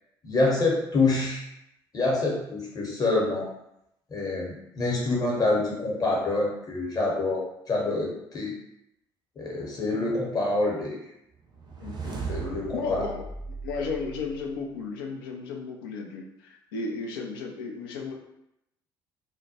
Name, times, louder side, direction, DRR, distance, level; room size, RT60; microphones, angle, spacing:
voice 1, 0.2-1.4 1.9-3.5 4.1-8.5 9.4-11.0 12.3-13.0, left 2 dB, 30° left, -3 dB, 0.9 m, -26 dB
sound 1, 11.5-14.8, right 5 dB, 35° right, 0.5 m, -37 dB
voice 2, 11.8-12.1 12.7-13.3 13.6-18.1, left 4 dB, 70° left, 1 dB, 0.4 m, -34 dB
2.2 x 2.1 x 2.8 m, 0.82 s
figure-of-eight pair, 50°, 12 cm